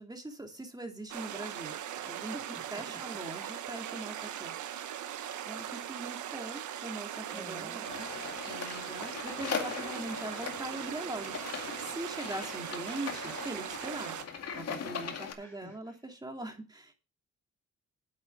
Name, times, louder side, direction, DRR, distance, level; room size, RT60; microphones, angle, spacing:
voice 1, 0.0-2.3 2.7-4.5 5.4-8.1 8.5-14.1 14.5-16.9, right 2 dB, 15° right, 3 dB, 2.8 m, -42 dB
sound 1, 1.1-14.2, right 10 dB, 75° right, 1.4 m, -40 dB
voice 2, 2.1-3.0 7.3-7.9 15.4-16.0, equal, 10° left, 1 dB, 2.1 m, -49 dB
sound 2, 7.8-15.3, left 7 dB, 55° left, 2.2 m, -40 dB
8.6 x 7.7 x 5.8 m, 0.32 s
cardioid pair, 90°, 30 cm